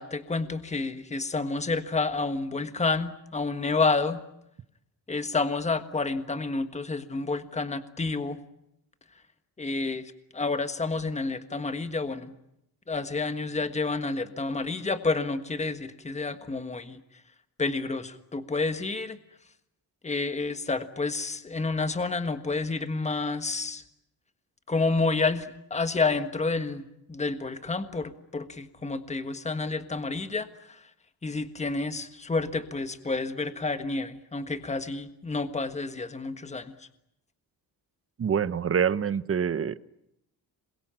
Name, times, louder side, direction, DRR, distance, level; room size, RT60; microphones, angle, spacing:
voice 1, 0.0-4.2 5.1-8.4 9.6-12.3 12.9-17.0 17.6-19.2 20.0-23.8 24.7-30.8 31.2-36.7, left 3 dB, 20° left, 9 dB, 1.5 m, -29 dB
voice 2, 38.2-39.8, right 7 dB, 35° right, 15 dB, 0.9 m, -26 dB
27.5 x 22.5 x 8.8 m, 0.81 s
wide cardioid pair, 145°, 37 cm